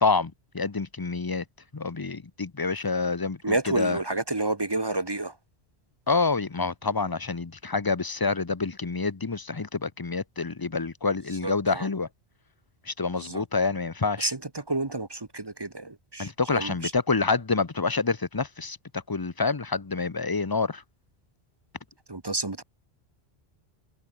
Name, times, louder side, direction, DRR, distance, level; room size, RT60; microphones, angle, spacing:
voice 1, 0.0-1.4 1.7-3.4 3.8-4.0 6.1-12.1 12.9-14.3 16.2-20.8, left 4 dB, 25° left, 0.7 m, -27 dB
voice 2, 3.4-5.4 11.3-11.9 13.1-13.5 14.2-16.9 22.1-22.6, right 2 dB, 25° right, 0.9 m, -30 dB
omnidirectional pair, 1.1 m